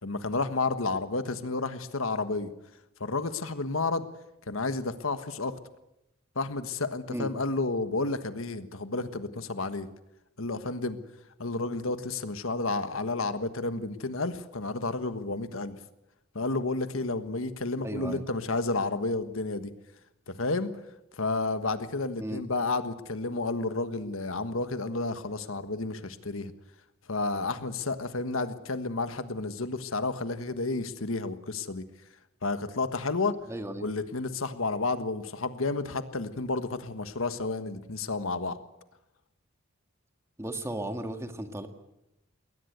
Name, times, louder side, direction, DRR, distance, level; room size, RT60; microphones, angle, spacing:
voice 1, 0.0-2.5 3.0-4.0 4.5-5.6 6.3-9.9 10.4-11.0 11.4-15.8 16.3-19.7 20.3-20.7 21.2-26.5 27.1-31.8 32.4-33.3 33.8-38.6, left 3 dB, 80° left, 11 dB, 1.5 m, -31 dB
voice 2, 17.8-18.2 22.2-22.4 33.5-33.9 40.4-41.7, right 1 dB, 15° right, 6 dB, 1.9 m, -35 dB
21.5 x 19.0 x 8.1 m, 0.88 s
head